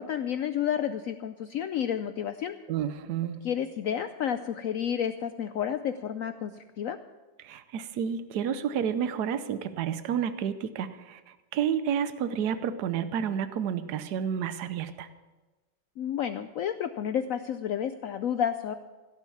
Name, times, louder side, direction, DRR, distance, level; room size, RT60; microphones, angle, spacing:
voice 1, 0.0-2.6 3.4-7.0 16.0-18.7, left 9 dB, 90° left, 10 dB, 0.7 m, -31 dB
voice 2, 2.7-3.5 7.4-11.2 11.5-15.1, right 8 dB, 65° right, 12 dB, 1.3 m, -30 dB
16.5 x 8.2 x 7.1 m, 1.2 s
omnidirectional pair, 2.0 m